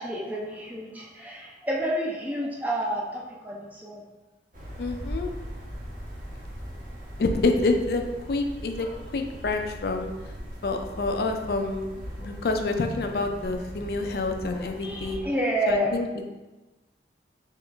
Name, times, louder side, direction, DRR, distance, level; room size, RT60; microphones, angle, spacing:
voice 1, 0.0-4.0 14.8-15.9, equal, 10° right, -2 dB, 0.4 m, -29 dB
sound 1, 4.5-15.2, equal, 50° right, 1.0 m, -39 dB
voice 2, 4.8-5.3 7.2-8.9 9.1-10.1 10.6-15.2 15.7-16.1, left 3 dB, 60° left, 5 dB, 0.4 m, -27 dB
3.7 x 3.0 x 3.4 m, 1.1 s
head